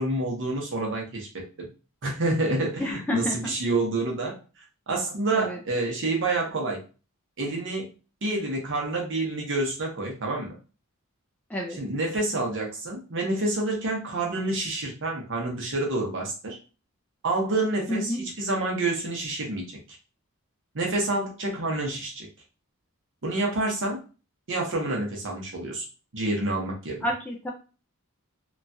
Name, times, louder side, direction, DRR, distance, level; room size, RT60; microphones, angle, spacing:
voice 1, 0.0-1.7 2.0-4.4 4.9-6.8 7.4-7.9 8.2-10.5 11.8-16.6 17.2-19.8 20.7-22.3 23.2-24.0 24.5-25.9 26.1-27.0, right 2 dB, 60° right, -1 dB, 0.8 m, -28 dB
voice 2, 2.8-3.5 5.3-5.6 11.5-11.8 17.9-18.2 27.0-27.5, equal, 5° left, -1 dB, 0.4 m, -29 dB
3.0 x 2.3 x 2.6 m, 0.34 s
head